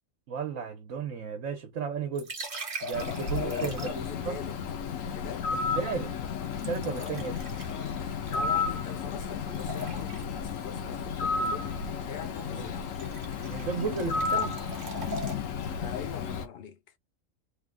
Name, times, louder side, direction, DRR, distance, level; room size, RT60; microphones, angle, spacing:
voice 1, 0.3-2.3 2.8-4.4 5.7-6.1 6.7-7.4 12.5-12.8 13.5-14.6, right 6 dB, 70° right, 1.2 m, -34 dB
sound 1, 2.1-4.2 6.6-8.9 9.2-10.4 12.2-12.4 12.7-15.4, equal, 45° right, 1.1 m, -40 dB
Bird, 2.9-16.5, left 5 dB, 75° left, 1.2 m, -33 dB
voice 2, 3.3-4.6 5.1-5.5 6.9-7.2 8.3-12.9 15.8-16.8, left 8 dB, 55° left, 0.7 m, -42 dB
3.6 x 2.4 x 3.5 m
omnidirectional pair, 1.4 m